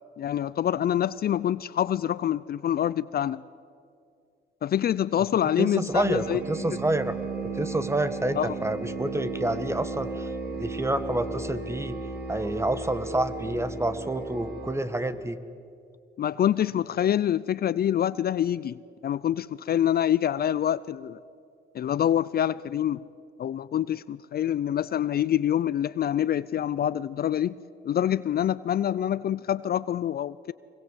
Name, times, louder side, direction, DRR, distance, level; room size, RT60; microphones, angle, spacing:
voice 1, 0.2-3.4 4.6-6.4 8.4-8.6 16.2-21.2 21.7-23.0 23.4-27.6 27.8-30.5, left 10 dB, 50° left, 18 dB, 0.5 m, -26 dB
voice 2, 5.6-7.2 7.5-10.3 10.6-12.0 12.3-15.4, right 1 dB, 15° right, 12 dB, 1.3 m, -28 dB
sound 1, 5.9-14.7, right 3 dB, 55° right, 3.8 m, -35 dB
24.5 x 21.0 x 8.1 m, 2.4 s
cardioid pair, 90°, 20 cm